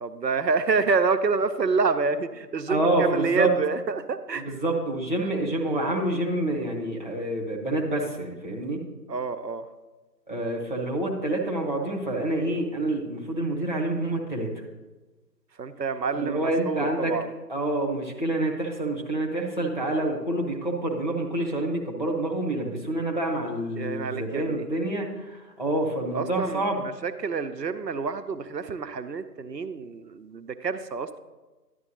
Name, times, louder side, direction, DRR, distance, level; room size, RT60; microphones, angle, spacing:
voice 1, 0.0-4.4 9.1-9.7 15.6-17.3 23.8-24.7 26.1-31.2, right 4 dB, 75° right, 10 dB, 0.7 m, -28 dB
voice 2, 2.7-3.5 4.3-8.8 10.3-14.5 16.1-17.1 17.5-26.8, right 1 dB, 30° left, -2 dB, 0.9 m, -27 dB
11.0 x 8.6 x 2.7 m, 1.2 s
figure-of-eight pair, 165°, 50 cm